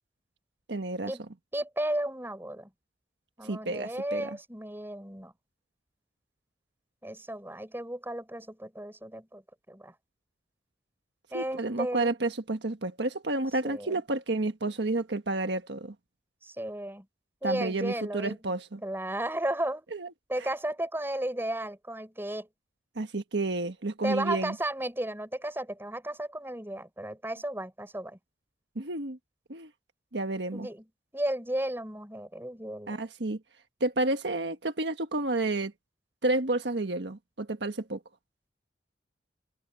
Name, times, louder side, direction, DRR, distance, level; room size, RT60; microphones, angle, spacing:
voice 1, 0.7-1.1 3.4-4.3 11.3-15.9 17.4-18.8 19.9-20.1 22.9-24.5 28.7-29.2 29.5-29.7 30.1-30.7 32.9-33.4 33.8-35.7 36.2-38.0, right 2 dB, 75° right, 1.4 m, -30 dB
voice 2, 1.5-2.7 3.4-5.3 7.0-9.4 9.7-10.0 11.3-12.1 13.6-14.0 16.4-17.1 17.4-18.4 18.8-19.8 20.3-22.5 24.0-28.2 30.5-30.8 31.1-32.9, right 1 dB, 15° right, 6.2 m, -34 dB
head